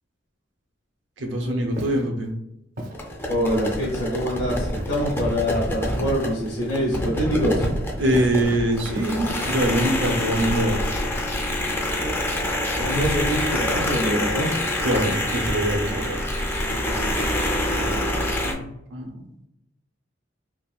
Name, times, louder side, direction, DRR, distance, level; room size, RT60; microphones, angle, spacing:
voice 1, 1.2-2.3 8.0-10.9 14.8-16.2 17.8-19.2, right 1 dB, 85° right, 2 dB, 0.7 m, -24 dB
Walk footsteps, 1.7-2.1 2.8-3.0 3.8-4.2 4.8-5.1 6.0-6.3 7.3-7.7 8.1-8.4 9.0-9.5 10.4-10.9, equal, 50° right, 0.5 m, -36 dB
sound 1, 2.9-18.5, left 1 dB, 10° left, 0.4 m, -26 dB
voice 2, 3.3-7.7 12.8-14.6, equal, 70° left, -5 dB, 0.8 m, -25 dB
3.5 x 2.3 x 2.3 m, 0.86 s
head